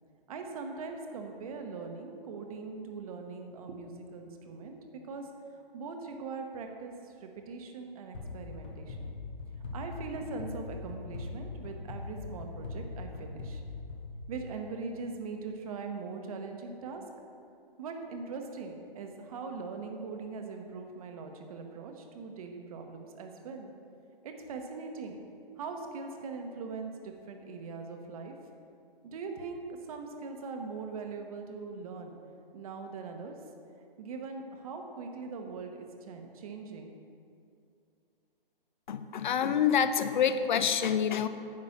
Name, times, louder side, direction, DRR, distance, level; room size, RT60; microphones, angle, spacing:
voice 1, 0.3-5.3 5.7-9.1 9.7-13.6 14.3-17.0 17.8-23.7 24.2-25.2 25.6-28.3 29.0-32.2 32.5-33.3 34.0-36.9, right 4 dB, 40° right, 4 dB, 1.0 m, -41 dB
sound 1, 8.1-14.8, left 3 dB, 10° left, 0.3 m, -41 dB
voice 2, 38.9-41.3, left 8 dB, 55° left, 11 dB, 0.6 m, -27 dB
9.8 x 5.2 x 7.0 m, 2.5 s
hypercardioid pair, 145°, 29 cm